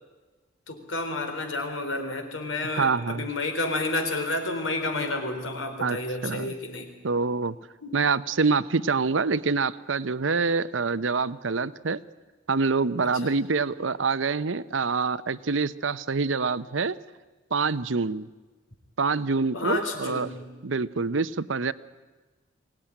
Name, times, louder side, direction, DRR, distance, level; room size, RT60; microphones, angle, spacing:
voice 1, 0.7-6.9 7.8-8.0 13.2-13.3 19.5-20.5, left 2 dB, 90° left, 5 dB, 4.1 m, -30 dB
voice 2, 2.7-3.3 5.8-6.0 6.2-6.5 7.0-7.6 7.9-12.0 12.5-17.0 17.5-18.3 19.0-20.3 20.6-21.7, right 4 dB, 85° right, 15 dB, 0.8 m, -26 dB
23.5 x 18.0 x 10.0 m, 1.3 s
head